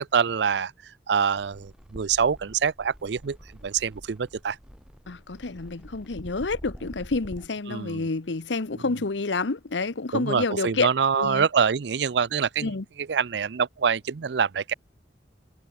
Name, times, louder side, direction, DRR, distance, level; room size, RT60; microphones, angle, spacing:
voice 1, 0.1-0.7 1.1-3.4 3.6-4.6 7.7-8.0 10.1-12.7 13.1-14.7, right 6 dB, 70° right, 0.5 m, -25 dB
sound 1, 1.4-7.5, equal, 5° right, 2.3 m, -46 dB
voice 2, 5.1-10.9 11.2-11.5 12.6-12.8, left 3 dB, 85° left, 1.0 m, -29 dB
head